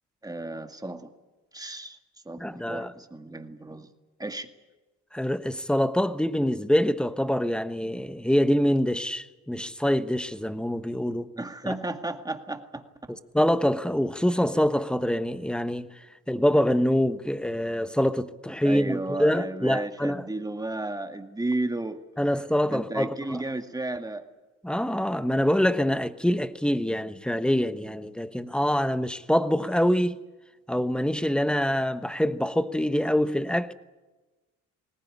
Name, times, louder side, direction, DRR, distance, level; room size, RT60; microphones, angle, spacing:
voice 1, 0.2-1.1 1.5-2.0 2.3-3.9 4.2-4.5 11.4-12.8 18.6-22.0 22.7-24.2, right 2 dB, 10° right, 2.0 m, -33 dB
voice 2, 2.4-2.9 5.1-11.3 11.6-11.8 13.3-15.9 16.3-20.2 22.2-23.4 24.6-30.2 30.7-33.7, equal, 5° left, 1.1 m, -25 dB
21.0 x 18.5 x 9.9 m
cardioid pair, 90°, 30 cm